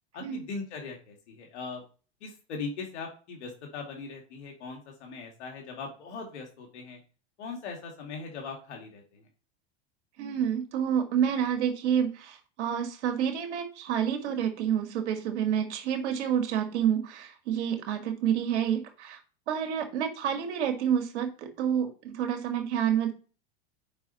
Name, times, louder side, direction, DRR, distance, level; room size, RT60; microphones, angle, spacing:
voice 1, 0.1-1.8 2.2-7.0 7.4-9.3, left 4 dB, 90° left, 1 dB, 2.3 m, -40 dB
voice 2, 10.2-19.2 19.5-23.1, right 9 dB, 85° right, 5 dB, 2.0 m, -28 dB
6.9 x 5.5 x 4.1 m, 0.36 s
supercardioid pair, 120°, 33 cm